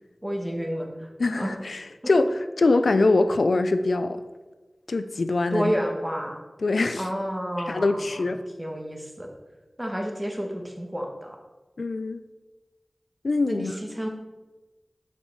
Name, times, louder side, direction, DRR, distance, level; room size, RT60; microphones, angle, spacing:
voice 1, 0.2-1.1 1.4-1.6 5.5-6.4 7.0-8.2 8.6-9.3 9.8-11.4 13.5-14.1, equal, 15° right, 2 dB, 1.5 m, -30 dB
voice 2, 1.2-4.2 4.9-5.7 6.6-7.1 7.6-8.4 11.8-12.2 13.2-13.8, left 3 dB, 90° left, 10 dB, 0.4 m, -23 dB
7.0 x 5.8 x 4.6 m, 1.2 s
wide cardioid pair, 45°, 0 cm